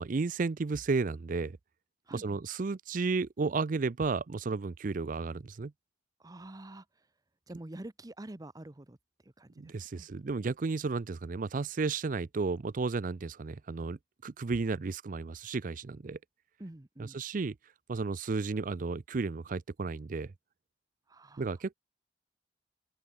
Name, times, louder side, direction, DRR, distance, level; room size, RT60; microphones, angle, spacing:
voice 1, 0.0-1.6 2.1-5.7 9.6-16.2 17.0-17.5 17.9-20.3 21.4-21.7, right 4 dB, 50° right, 0.5 m, -33 dB
voice 2, 2.1-2.4 6.2-7.1 7.5-9.0 9.2-10.1 16.6-17.2 21.1-21.5, right 1 dB, 20° right, 0.8 m, -47 dB
open air
head